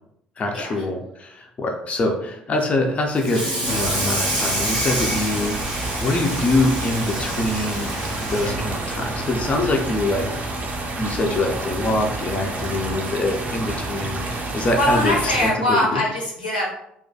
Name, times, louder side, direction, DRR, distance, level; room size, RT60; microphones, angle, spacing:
voice 1, 0.4-5.6 6.0-7.9 8.3-10.3 10.9-16.0, left 2 dB, 30° left, 2 dB, 0.4 m, -24 dB
Water tap faucet / Sink (filling or washing), 3.1-9.8 10.2-10.4 10.8-10.9 11.3-11.4 12.5-12.6 13.1-13.3, equal, 85° right, 0.7 m, -28 dB
sound 1, 3.7-15.5, right 2 dB, 35° right, 0.4 m, -29 dB
voice 2, 14.8-16.7, left 1 dB, 80° left, -3 dB, 0.6 m, -22 dB
2.3 x 2.2 x 2.6 m, 0.75 s
figure-of-eight pair, 50°, 4 cm